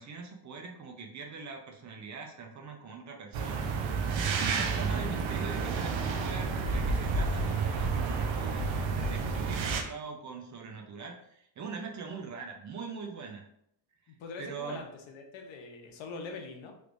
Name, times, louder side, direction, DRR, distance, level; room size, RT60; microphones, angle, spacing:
voice 1, 0.0-3.7 4.0-13.4 14.4-14.8, right 5 dB, 40° right, 2 dB, 0.5 m, -42 dB
sound 1, 3.3-9.8, right 4 dB, 80° right, 0.6 m, -30 dB
voice 2, 14.1-16.7, left 4 dB, 80° left, 3 dB, 0.8 m, -43 dB
3.3 x 3.2 x 2.5 m, 0.74 s
cardioid pair, 155°, 45 cm